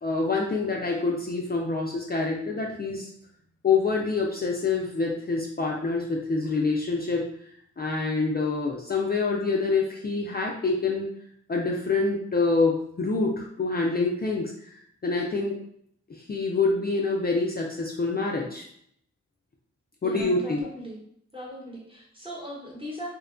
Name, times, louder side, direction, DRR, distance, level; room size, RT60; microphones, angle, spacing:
voice 1, 0.0-3.1 3.6-7.3 7.8-11.1 11.5-15.6 16.1-18.6 20.0-20.7, left 3 dB, 30° left, -1 dB, 0.4 m, -26 dB
voice 2, 20.0-21.0 21.3-23.1, equal, 15° right, -3 dB, 1.0 m, -39 dB
2.8 x 2.1 x 2.5 m, 0.69 s
cardioid pair, 50°, 30 cm